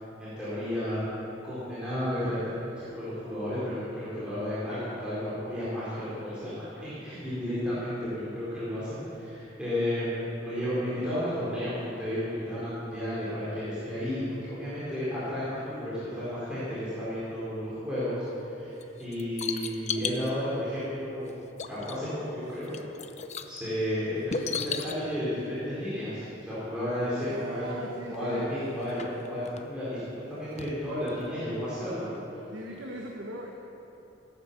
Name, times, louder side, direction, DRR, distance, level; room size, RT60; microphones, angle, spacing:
voice 1, 0.2-1.1 1.4-2.4 2.8-21.3 21.7-22.7 23.5-27.6 28.1-32.2, equal, 5° right, -12 dB, 4.2 m, -32 dB
sound 1, 18.8-20.3 21.3-21.4 21.6-22.2 22.5-23.6 24.3-25.0 26.9-27.0 27.3-27.4 28.1-28.2 28.7-29.6 30.6-30.7 31.1-31.2, left 6 dB, 35° left, 0.7 m, -35 dB
voice 2, 27.2-28.6 32.5-33.5, right 1 dB, 70° right, -1 dB, 1.4 m, -40 dB
17.5 x 9.8 x 7.1 m, 3.0 s
head